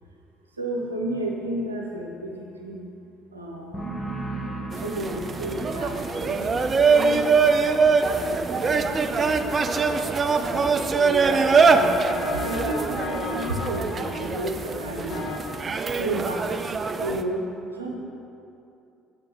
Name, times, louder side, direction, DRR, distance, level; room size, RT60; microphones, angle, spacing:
voice 1, 0.6-2.8 3.3-4.0 4.8-7.6 8.3-9.7 10.3-15.3 16.0-16.5 17.0-17.5 17.7-17.9, right 1 dB, 85° right, 0 dB, 0.8 m, -32 dB
sound 1, 3.7-11.2 11.5-12.0, right 2 dB, 10° left, 1.8 m, -39 dB
sound 2, 4.7-17.2, right 4 dB, 35° right, 0.4 m, -23 dB
sound 3, 5.7-15.4, left 4 dB, 60° left, 0.8 m, -37 dB
6.7 x 6.3 x 6.1 m, 2.8 s
figure-of-eight pair, 50°, 0 cm